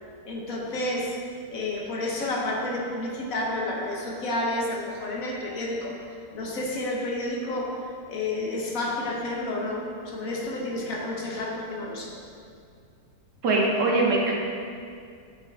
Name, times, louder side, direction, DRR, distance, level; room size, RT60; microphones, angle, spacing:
voice 1, 0.3-1.1 1.5-6.0 6.3-7.8 8.1-12.2, left 2 dB, 55° left, -2 dB, 1.5 m, -30 dB
voice 2, 13.4-14.3, right 2 dB, 80° right, -2 dB, 1.9 m, -22 dB
7.6 x 7.0 x 4.1 m, 2.3 s
omnidirectional pair, 1.8 m